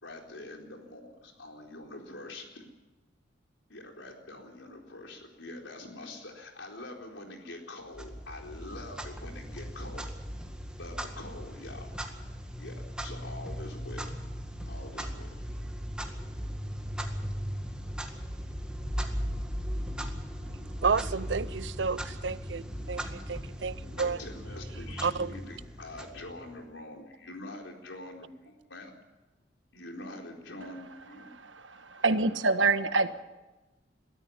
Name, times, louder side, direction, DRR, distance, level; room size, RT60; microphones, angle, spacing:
voice 1, 0.0-2.6 3.7-10.0 10.8-11.9 12.6-12.7 13.0-14.1 14.7-15.4 24.0-28.9 29.7-31.3, left 2 dB, 85° left, 4.2 m, -45 dB
Clock, 7.9-26.7, equal, 5° right, 2.0 m, -38 dB
voice 2, 20.5-24.2 25.0-25.3, right 5 dB, 70° right, 0.6 m, -31 dB
voice 3, 31.4-33.2, right 3 dB, 90° right, 1.3 m, -26 dB
22.0 x 13.5 x 9.9 m
head